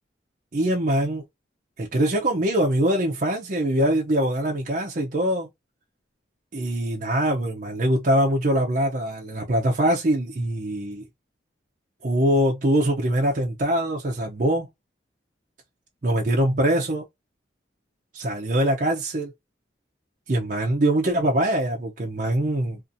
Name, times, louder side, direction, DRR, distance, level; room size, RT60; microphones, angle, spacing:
voice 1, 0.5-1.2 1.8-5.5 6.5-11.1 12.0-14.7 16.0-17.0 18.1-19.3 20.3-22.8, right 1 dB, 40° right, 0.5 m, -23 dB
2.6 x 2.5 x 2.5 m
head